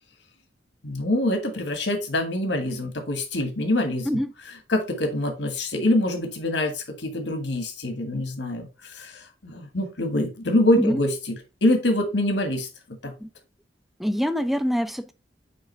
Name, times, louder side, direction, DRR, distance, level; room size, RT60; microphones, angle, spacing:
voice 1, 0.8-4.1 4.7-12.7 13.0-13.1, left 1 dB, 85° left, 1.7 m, -25 dB
voice 2, 14.0-15.1, equal, ahead, 0.5 m, -24 dB
8.6 x 3.4 x 3.3 m
head